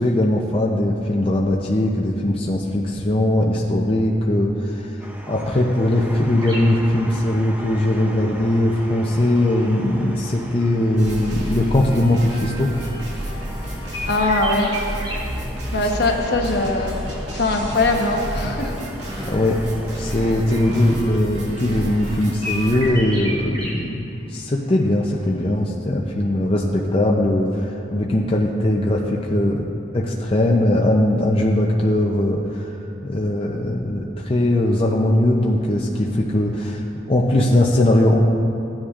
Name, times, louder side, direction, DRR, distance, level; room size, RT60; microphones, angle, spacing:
voice 1, 0.0-12.7 15.8-15.9 19.2-19.6 19.9-29.6 29.9-32.6 33.0-36.8 37.1-38.2, left 1 dB, 30° left, -2 dB, 0.6 m, -20 dB
sound 1, 5.0-21.0, equal, 10° right, 0.7 m, -38 dB
sound 2, 6.4-6.7 7.8-7.9 8.8-13.5 13.9-15.2 15.5-15.9 16.2-16.6 17.4-19.2 19.5-20.1 20.3-20.4 20.7-21.8 22.1-23.7 24.1-24.2 24.5-25.0 25.3-25.4, equal, 25° right, 2.1 m, -34 dB
sound 3, 11.0-22.9, equal, 70° right, 2.2 m, -31 dB
voice 2, 14.1-14.7 15.7-16.9 17.3-18.9, left 2 dB, 60° left, 1 dB, 1.1 m, -21 dB
16.0 x 9.7 x 2.5 m, 2.8 s
head